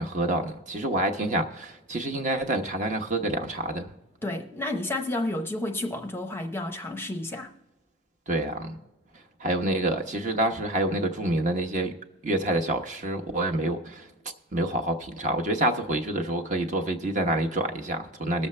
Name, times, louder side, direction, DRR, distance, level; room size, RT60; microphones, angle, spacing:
voice 1, 0.0-3.9 8.3-8.7 9.4-11.9 12.2-14.1 14.5-18.5, right 1 dB, 40° right, 1.0 m, -27 dB
voice 2, 4.2-7.5, left 1 dB, 10° left, 0.7 m, -31 dB
21.0 x 7.1 x 3.2 m
head